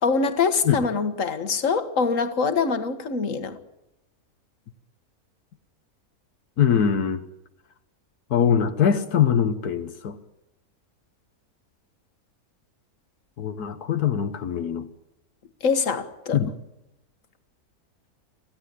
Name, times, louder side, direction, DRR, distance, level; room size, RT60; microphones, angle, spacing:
voice 1, 0.0-3.6 15.6-16.4, left 5 dB, 60° left, 2.0 m, -24 dB
voice 2, 6.6-7.2 8.3-10.2 13.4-14.9 16.3-16.5, left 8 dB, 85° left, 1.7 m, -22 dB
26.5 x 16.0 x 9.9 m
omnidirectional pair, 1.6 m